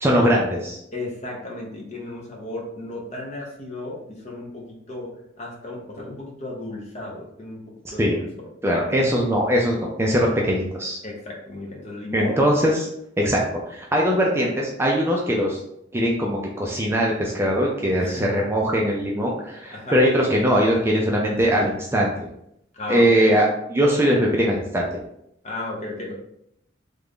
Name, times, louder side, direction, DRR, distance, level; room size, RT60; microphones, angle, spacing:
voice 1, 0.0-0.8 8.0-8.2 8.6-11.0 12.1-12.9 13.2-15.6 15.9-22.1 22.9-23.5 23.7-25.0, equal, 15° right, -2 dB, 0.4 m, -21 dB
voice 2, 0.9-8.9 11.0-12.4 18.0-18.4 19.7-20.1 22.7-23.4 25.4-26.1, left 2 dB, 35° left, -2 dB, 0.9 m, -34 dB
3.3 x 2.5 x 3.5 m, 0.75 s
head